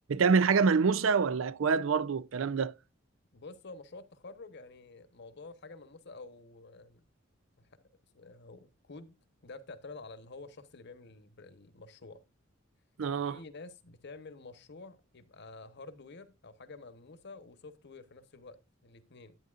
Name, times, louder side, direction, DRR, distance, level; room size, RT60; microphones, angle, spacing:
voice 1, 0.1-2.7 13.0-13.4, right 5 dB, 75° right, 0.5 m, -26 dB
voice 2, 3.3-7.0 7.6-7.7 8.1-9.1 9.4-12.2 13.3-19.4, left 3 dB, 60° left, 1.1 m, -49 dB
11.0 x 9.0 x 2.4 m
head